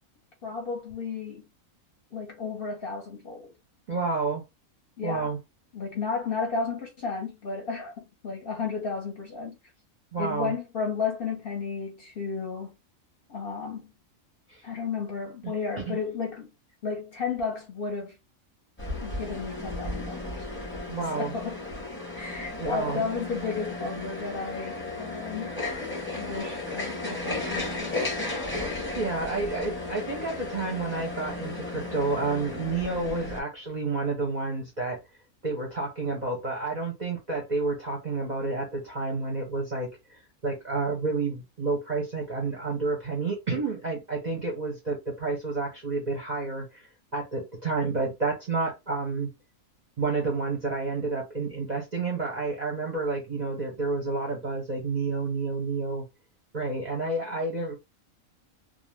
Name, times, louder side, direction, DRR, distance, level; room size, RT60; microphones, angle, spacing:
voice 1, 0.4-1.5 2.1-3.5 5.0-5.3 5.7-9.6 10.2-12.8 13.3-13.9 14.6-16.5 16.8-18.2 19.0-20.5 21.1-21.6 22.1-28.0, left 5 dB, 50° left, 0.8 m, -33 dB
voice 2, 3.9-4.4 5.0-5.4 10.1-10.5 14.5-14.6 15.8-16.0 20.9-21.3 22.6-23.0 28.9-35.0 35.4-49.3 50.0-56.0 56.5-57.8, right 3 dB, 45° right, 0.6 m, -30 dB
sound 1, 18.8-33.4, left 2 dB, 10° left, 0.6 m, -34 dB
2.5 x 2.1 x 3.1 m
omnidirectional pair, 1.5 m